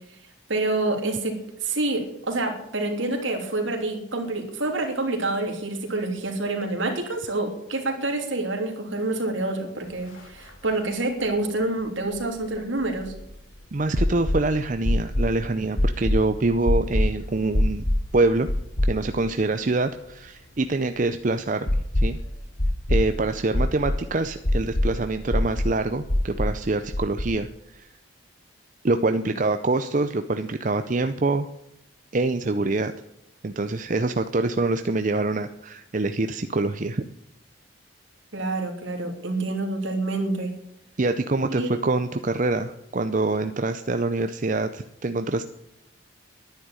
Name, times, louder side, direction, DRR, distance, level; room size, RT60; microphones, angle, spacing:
voice 1, 0.5-1.4 1.6-13.1 29.2-29.3 38.3-40.5 41.5-41.7, right 2 dB, 75° right, 3 dB, 3.0 m, -27 dB
sound 1, 10.2-10.3 10.5-10.6 12.1-13.4 14.0-14.4 14.8-15.3 15.8-16.2 16.7-17.1 17.5-18.0 18.5-19.3 19.6-19.7 21.7-22.2 22.6-23.1 23.5-24.0 24.4-24.9 25.3-25.7 26.1-26.5 26.9-27.2, left 1 dB, 85° left, 2.6 m, -23 dB
voice 2, 13.7-17.9 18.1-18.5 18.9-22.2 22.9-27.5 27.7-27.9 28.8-31.5 32.1-32.9 33.4-37.0 41.0-45.4, right 2 dB, 40° right, 9 dB, 0.6 m, -25 dB
11.0 x 10.0 x 8.9 m, 0.82 s
head